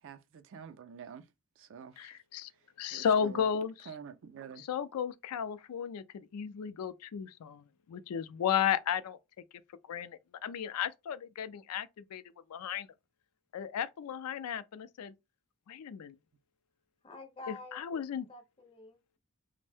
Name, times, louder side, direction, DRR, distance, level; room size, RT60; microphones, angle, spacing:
voice 1, 0.0-1.3 1.6-2.2 2.5-3.5 3.9-4.6, right 7 dB, 60° right, 0.4 m, -48 dB
voice 2, 2.0-2.5 2.8-3.7 4.7-9.2 9.9-12.2 12.5-12.9 13.5-15.1 15.7-16.1 17.5-18.3, left 8 dB, 85° left, 0.4 m, -34 dB
voice 3, 17.0-18.0 18.3-19.2, left 3 dB, 25° left, 0.5 m, -49 dB
2.5 x 2.0 x 3.4 m
head